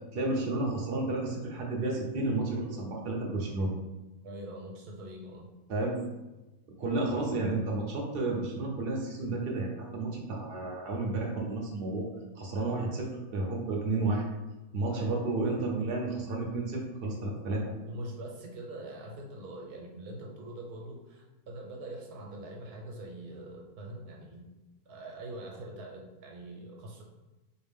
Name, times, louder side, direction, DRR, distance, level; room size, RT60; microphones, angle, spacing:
voice 1, 0.1-3.7 5.7-6.0 6.8-12.1 12.4-14.3 14.7-17.6, right 2 dB, 45° right, -1 dB, 0.8 m, -31 dB
voice 2, 4.2-5.5 12.6-12.9 14.9-15.2 17.9-24.5 24.9-27.0, right 1 dB, 80° right, 0 dB, 1.3 m, -43 dB
4.3 x 2.4 x 3.5 m, 1.1 s
omnidirectional pair, 1.6 m